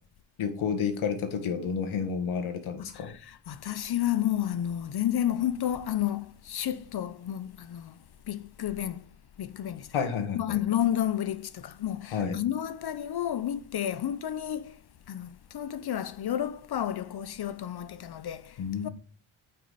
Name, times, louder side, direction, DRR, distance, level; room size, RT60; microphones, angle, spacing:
voice 1, 0.4-3.1 9.9-10.6 12.1-12.4 18.6-18.9, left 6 dB, 80° left, 1.7 m, -30 dB
voice 2, 2.8-9.1 9.4-9.9 10.3-14.8 15.1-18.9, left 11 dB, 55° left, 0.7 m, -31 dB
9.0 x 5.5 x 4.1 m
cardioid pair, 75°, 48 cm